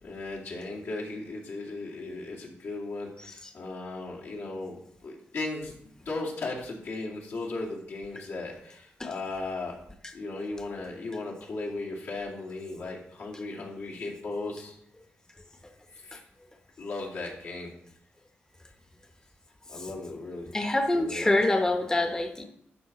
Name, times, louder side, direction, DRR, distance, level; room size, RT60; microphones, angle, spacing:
voice 1, 0.0-9.8 10.1-14.8 16.0-16.2 16.8-17.7 19.7-20.5 20.9-21.3, left 2 dB, 75° left, -4 dB, 2.3 m, -36 dB
voice 2, 20.5-22.4, left 2 dB, 15° left, 5 dB, 0.8 m, -25 dB
11.5 x 4.7 x 4.1 m, 0.71 s
cardioid pair, 90°, 4 cm